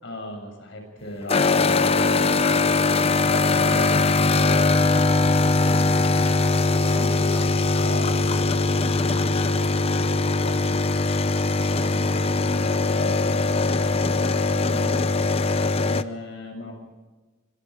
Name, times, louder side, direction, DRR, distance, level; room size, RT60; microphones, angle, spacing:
voice 1, 0.0-2.1 3.2-4.7 6.8-7.1 7.8-10.8 11.6-15.0 15.8-16.7, left 1 dB, 65° left, 4 dB, 7.2 m, -37 dB
sound 1, 1.3-16.0, left 3 dB, 30° left, 0.7 m, -21 dB
voice 2, 5.5-7.5 11.7-12.0, left 1 dB, 10° right, 0 dB, 4.2 m, -40 dB
26.0 x 22.5 x 5.0 m, 1.3 s
head